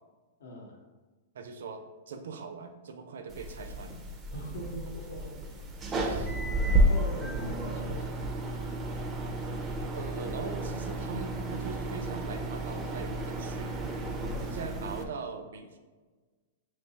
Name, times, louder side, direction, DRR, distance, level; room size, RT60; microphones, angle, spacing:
voice 1, 0.4-0.8 4.3-5.7 6.7-8.4 14.2-14.4, equal, 75° left, 1 dB, 0.8 m, -42 dB
voice 2, 1.3-4.0 5.9-6.3 9.9-13.8 14.4-15.8, right 5 dB, 75° right, 7 dB, 0.4 m, -41 dB
sound 1, 3.3-15.0, right 1 dB, 15° right, 0.4 m, -32 dB
3.5 x 3.0 x 2.8 m, 1.3 s
hypercardioid pair, 160°, 0 cm